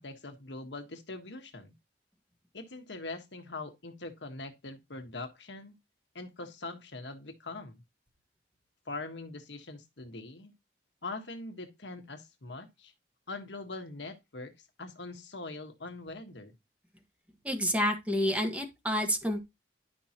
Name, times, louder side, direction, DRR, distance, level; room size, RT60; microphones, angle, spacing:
voice 1, 0.0-1.7 2.5-5.7 6.1-7.8 8.9-10.5 11.0-12.9 13.3-16.5, left 2 dB, 80° left, 1.5 m, -42 dB
voice 2, 17.4-19.4, equal, 10° right, 1.5 m, -29 dB
11.0 x 5.4 x 2.9 m
head